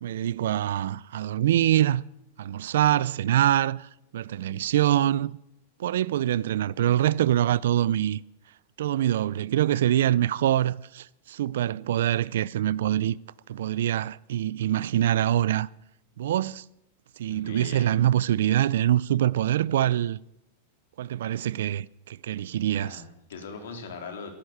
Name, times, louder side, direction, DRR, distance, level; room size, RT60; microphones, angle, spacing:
voice 1, 0.0-2.0 2.4-3.9 4.1-5.4 5.8-8.2 8.8-13.2 13.5-15.7 16.2-16.6 17.2-20.2 21.0-23.0, right 12 dB, 75° right, 0.5 m, -24 dB
voice 2, 17.3-18.1 22.7-24.3, left 4 dB, 85° left, 3.8 m, -40 dB
13.0 x 11.5 x 8.0 m
supercardioid pair, 165°, 0 cm